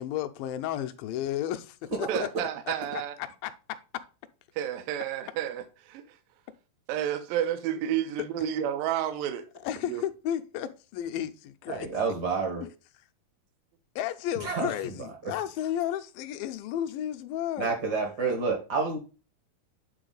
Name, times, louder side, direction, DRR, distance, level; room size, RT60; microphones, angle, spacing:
voice 1, 0.0-2.3 2.7-2.8 3.2-3.5 9.6-11.9 14.0-17.8, left 11 dB, 80° left, 2.3 m, -33 dB
voice 2, 2.1-3.1 4.6-6.0 6.9-9.4 9.9-10.0, right 10 dB, 80° right, 2.3 m, -30 dB
voice 3, 11.7-12.6 14.4-14.9 15.2-15.3 17.6-19.0, right 4 dB, 55° right, 1.1 m, -29 dB
9.0 x 4.1 x 3.9 m
omnidirectional pair, 4.2 m